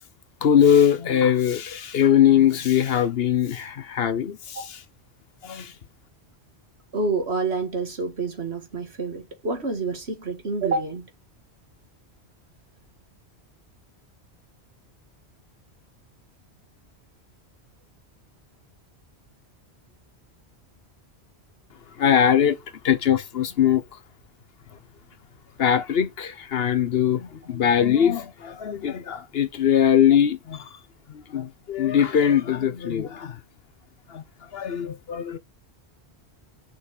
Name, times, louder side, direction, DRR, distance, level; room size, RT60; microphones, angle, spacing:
voice 1, 0.4-4.6 5.4-5.7 22.0-22.6 22.8-23.8 25.6-30.7 31.1-33.4 34.1-34.2 34.5-35.4, left 9 dB, 65° left, 1.0 m, -21 dB
voice 2, 6.9-11.1, right 3 dB, 70° right, 2.2 m, -28 dB
6.1 x 4.8 x 4.9 m
omnidirectional pair, 1.1 m